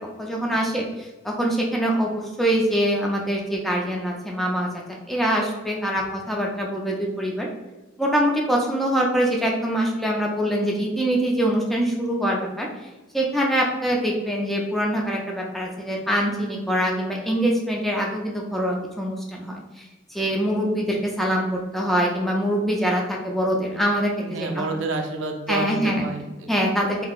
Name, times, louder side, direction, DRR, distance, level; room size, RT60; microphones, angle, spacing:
voice 1, 0.2-4.7 5.1-7.5 8.0-12.7 13.1-19.8 20.1-24.1 24.6-24.7 25.5-26.0 26.5-27.1, equal, ahead, -2 dB, 0.3 m, -24 dB
voice 2, 24.2-26.5, right 3 dB, 70° right, 4 dB, 0.5 m, -29 dB
3.7 x 2.7 x 2.3 m, 1.2 s
head